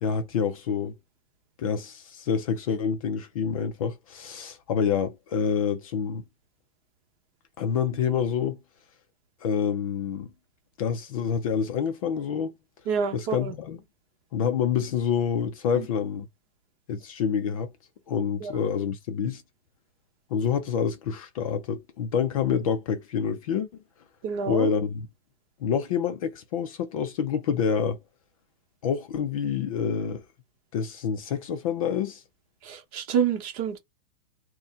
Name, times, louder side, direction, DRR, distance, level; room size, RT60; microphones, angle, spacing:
voice 1, 0.0-1.0 1.6-6.2 7.6-8.6 9.4-10.3 10.8-12.5 13.1-13.8 14.3-16.3 16.9-17.7 18.1-19.4 20.3-23.7 24.5-25.1 25.6-28.0 28.8-30.2 30.7-32.2, left 7 dB, 35° left, 0.5 m, -27 dB
voice 2, 12.9-13.5 15.7-15.9 18.4-18.5 24.2-24.7 32.6-33.8, right 7 dB, 35° right, 1.0 m, -28 dB
4.0 x 2.2 x 3.6 m
hypercardioid pair, 165°, 32 cm